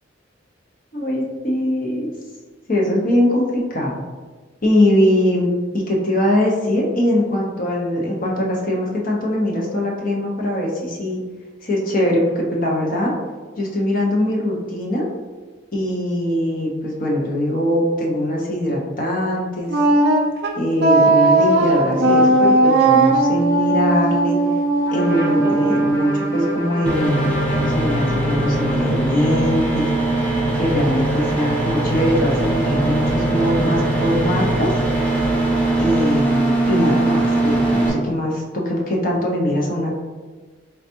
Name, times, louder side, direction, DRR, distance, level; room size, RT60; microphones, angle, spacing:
voice 1, 0.9-2.1 2.7-4.0 4.6-5.5 5.7-11.2 11.6-13.1 13.6-15.1 15.7-19.7 20.6-24.4 24.9-29.9 30.5-34.7 35.8-40.0, left 1 dB, 45° left, -2 dB, 0.9 m, -21 dB
Wind instrument woodwind instrument, 19.7-26.6, right 2 dB, 60° right, 0.5 m, -17 dB
Trumpet, 24.8-29.4, left 1 dB, 85° left, 1.3 m, -30 dB
sound 1, 26.8-37.9, right 2 dB, 10° left, 0.8 m, -20 dB
4.0 x 3.4 x 2.9 m, 1.3 s
head